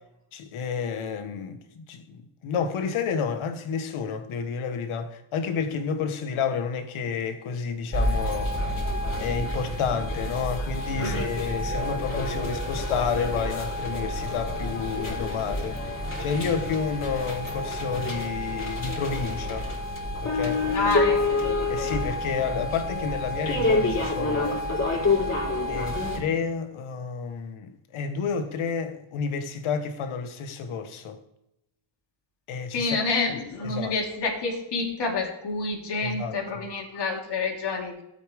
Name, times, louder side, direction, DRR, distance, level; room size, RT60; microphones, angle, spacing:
voice 1, 0.3-8.5 9.1-19.7 20.2-20.6 21.7-24.6 24.9-25.2 25.7-31.2 32.5-33.0 33.3-33.4 33.6-33.9 36.0-36.3, left 6 dB, 85° left, 1.5 m, -30 dB
sound 1, 7.9-26.2, left 2 dB, 35° left, 4.0 m, -28 dB
voice 2, 11.0-11.3 20.7-21.6 32.7-37.9, left 3 dB, 55° left, 3.1 m, -28 dB
14.5 x 8.4 x 3.6 m
cardioid pair, 115°, 48 cm